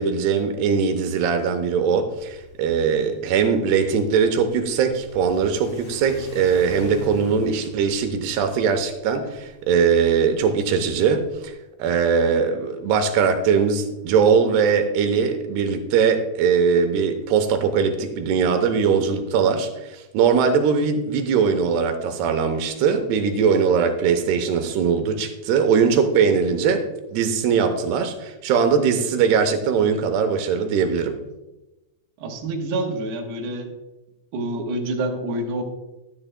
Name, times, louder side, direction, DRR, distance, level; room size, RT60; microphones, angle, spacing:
voice 1, 0.0-11.5 11.8-31.2, right 6 dB, 90° right, 7 dB, 2.9 m, -21 dB
Car / Accelerating revving vroom, 2.1-11.5, left 1 dB, 70° left, 5.0 m, -43 dB
voice 2, 32.2-33.7 34.3-35.6, right 1 dB, 75° right, 2 dB, 3.0 m, -27 dB
13.0 x 10.0 x 2.2 m, 0.99 s
omnidirectional pair, 4.7 m